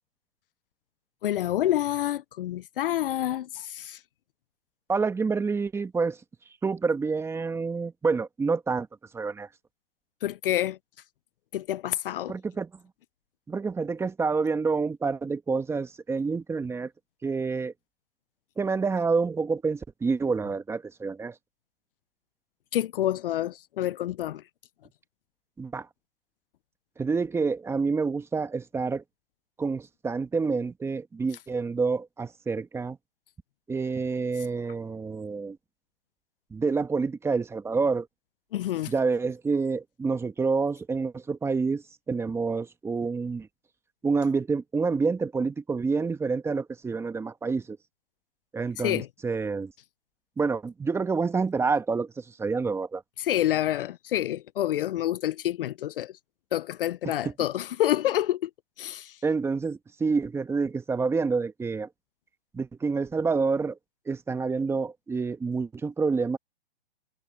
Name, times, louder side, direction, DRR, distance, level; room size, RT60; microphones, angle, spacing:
voice 1, 1.2-4.0 10.2-10.8 11.5-12.4 22.7-24.4 38.5-38.9 48.8-49.1 53.2-56.2 56.5-58.5 58.8-59.2, left 12 dB, 60° left, 0.7 m, -28 dB
voice 2, 4.9-6.2 6.6-8.9 9.1-9.5 12.3-12.7 13.5-16.9 17.2-17.7 18.6-21.3 25.6-25.9 27.0-29.0 29.6-33.0 33.7-35.6 36.5-38.1 38.9-43.5 44.0-47.8 48.5-49.7 50.4-53.0 57.0-57.1 59.2-61.9 62.5-63.8 64.1-66.4, right 4 dB, 10° right, 1.5 m, -28 dB
hypercardioid pair, 135°, 31 cm